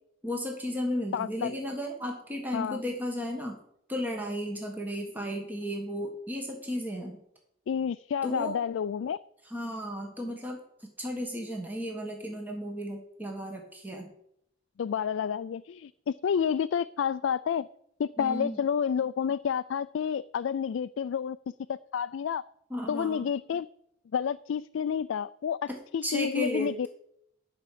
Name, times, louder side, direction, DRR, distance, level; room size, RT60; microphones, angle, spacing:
voice 1, 0.2-3.6 3.9-7.2 8.2-8.6 9.5-10.6 11.0-14.1 18.2-18.6 22.7-23.3 25.7-26.7, equal, 10° right, 1 dB, 1.6 m, -34 dB
voice 2, 1.1-1.5 2.5-2.8 7.7-9.2 14.8-17.7 18.0-21.4 21.7-22.4 22.9-23.7 24.1-26.9, left 7 dB, 80° left, 12 dB, 0.3 m, -30 dB
11.5 x 6.0 x 8.6 m, 0.73 s
head